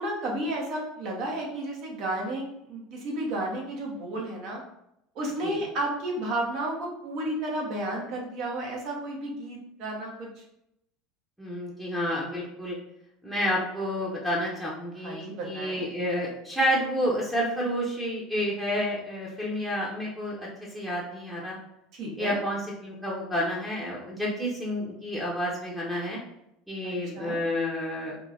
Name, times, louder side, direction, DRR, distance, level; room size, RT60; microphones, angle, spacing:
voice 1, 0.0-4.6 5.1-10.3 15.0-15.9 21.9-22.4 26.8-27.4, right 1 dB, 50° right, -1 dB, 1.1 m, -32 dB
voice 2, 11.4-12.8 13.2-20.4 20.7-21.6 22.2-26.2 26.7-28.2, equal, 5° right, -5 dB, 0.9 m, -30 dB
4.4 x 3.2 x 2.6 m, 0.81 s
figure-of-eight pair, 70°, 0 cm